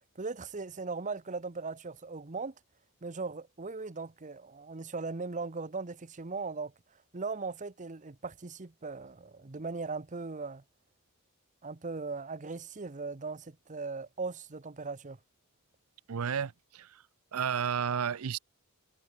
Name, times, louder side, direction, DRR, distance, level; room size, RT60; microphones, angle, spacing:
voice 1, 0.2-2.5 3.0-6.7 7.1-10.6 11.6-15.2, right 4 dB, 35° right, 0.9 m, -38 dB
voice 2, 16.1-17.0 17.3-18.4, right 7 dB, 70° right, 0.5 m, -32 dB
head